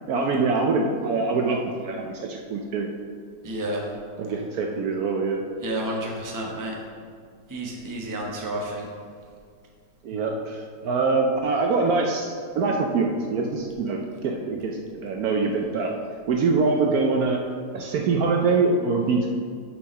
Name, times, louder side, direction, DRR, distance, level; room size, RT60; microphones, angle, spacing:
voice 1, 0.1-2.9 4.2-5.4 10.0-15.9 16.3-17.4 17.7-19.4, right 4 dB, 70° right, 1 dB, 1.0 m, -24 dB
voice 2, 3.4-3.8 5.6-6.7 7.5-8.9, right 1 dB, 15° right, -1 dB, 0.7 m, -30 dB
7.0 x 4.6 x 5.3 m, 2.1 s
omnidirectional pair, 1.9 m